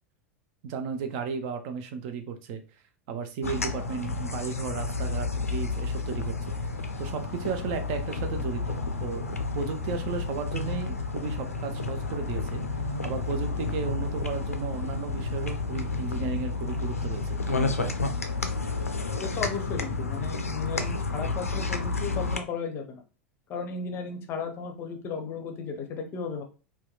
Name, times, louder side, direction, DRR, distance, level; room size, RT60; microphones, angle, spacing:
voice 1, 0.6-2.6 3.1-6.4 6.6-18.0, right 6 dB, 45° right, 7 dB, 0.4 m, -34 dB
sound 1, 3.4-22.4, left 3 dB, 80° left, 0.3 m, -31 dB
voice 2, 19.2-23.0 23.5-26.4, left 5 dB, 30° left, 5 dB, 0.6 m, -35 dB
2.7 x 2.2 x 2.2 m, 0.33 s
figure-of-eight pair, 85°, 8 cm